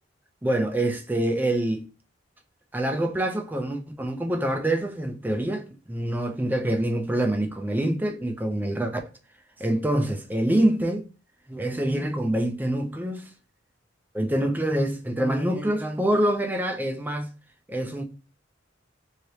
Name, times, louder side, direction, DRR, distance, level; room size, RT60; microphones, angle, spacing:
voice 1, 0.4-1.9 2.7-9.0 9.6-11.0 11.5-13.3 14.1-17.3 17.7-18.0, right 1 dB, 10° right, 0.4 m, -25 dB
3.2 x 2.9 x 2.7 m
head